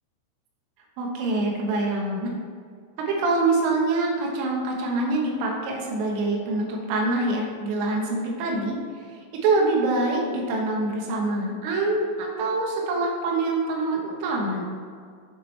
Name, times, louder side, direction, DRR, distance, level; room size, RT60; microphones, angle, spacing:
voice 1, 1.0-2.4 3.0-8.8 9.1-14.6, right 2 dB, 90° right, -1 dB, 3.8 m, -25 dB
9.0 x 7.0 x 3.3 m, 2.1 s
omnidirectional pair, 5.5 m